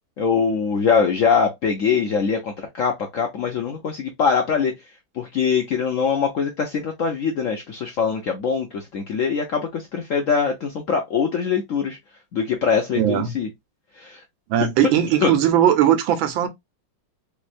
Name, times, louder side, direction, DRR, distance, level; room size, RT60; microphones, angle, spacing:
voice 1, 0.2-4.7 5.1-12.0 12.3-13.5 13.9-14.2 15.2-15.3, left 6 dB, 70° left, 0.7 m, -22 dB
voice 2, 12.9-13.3 14.5-16.5, right 10 dB, 90° right, 1.5 m, -19 dB
3.5 x 3.2 x 2.4 m
omnidirectional pair, 2.1 m